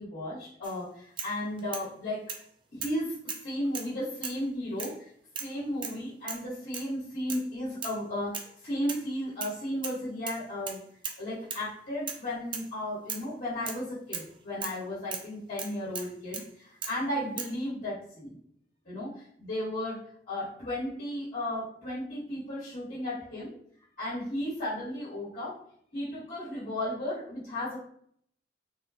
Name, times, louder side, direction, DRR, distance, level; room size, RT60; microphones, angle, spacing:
voice 1, 0.0-2.2 2.7-5.1 5.4-10.8 11.2-18.3 18.8-23.5 24.0-25.6 25.9-27.8, left 1 dB, 50° left, -11 dB, 1.3 m, -34 dB
sound 1, 0.6-0.8 1.2-1.9 2.3-2.4 2.8-3.0 3.3-3.9 4.2-4.5 4.8-5.0 5.4-5.5 5.8-6.0 6.3-6.5 6.7-6.9 7.3-7.5 7.8-8.0 8.3-8.5 8.9-9.5 9.8-10.0 10.3-11.2 11.5-11.7 12.1-12.3 12.5-12.7 13.1-13.3 13.7-13.8 14.1-14.3 14.6-14.8 15.1-15.3 15.6-16.5 16.8-17.0 17.4-17.6, right 6 dB, 25° right, 0.4 m, -38 dB
3.7 x 2.2 x 2.4 m, 0.65 s
head